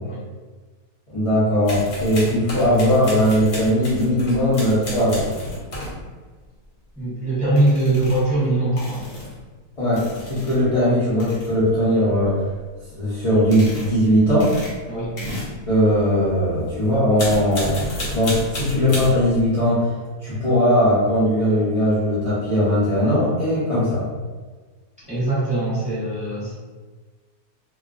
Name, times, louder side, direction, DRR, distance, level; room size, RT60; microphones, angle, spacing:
voice 1, 1.1-5.3 9.8-12.4 13.0-14.5 15.2-15.3 15.7-17.8 18.1-19.9 20.2-24.0, equal, 35° left, -12 dB, 0.6 m, -19 dB
sound 1, 1.6-6.0 7.6-8.3 8.8-9.3 9.9-10.6 11.1-11.6 12.2-12.7 13.3-14.0 14.3-16.5 16.9-19.5, left 1 dB, 55° left, 1.0 m, -32 dB
voice 2, 6.9-9.3 14.9-15.1 25.1-26.6, right 2 dB, 5° right, -10 dB, 0.7 m, -22 dB
2.4 x 2.3 x 2.4 m, 1.4 s
omnidirectional pair, 1.6 m